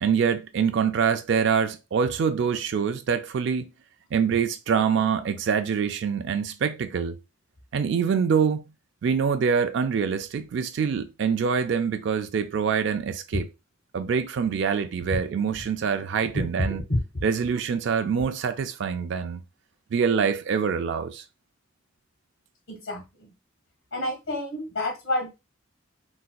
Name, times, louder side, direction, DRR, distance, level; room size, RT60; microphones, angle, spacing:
voice 1, 0.0-3.7 4.1-7.2 7.7-8.6 9.0-13.5 13.9-16.8 17.2-19.4 19.9-21.2, right 6 dB, 60° right, 0.3 m, -25 dB
voice 2, 16.3-17.0 22.7-23.3 23.9-25.3, left 1 dB, 85° left, 1.6 m, -28 dB
4.0 x 2.4 x 2.2 m
head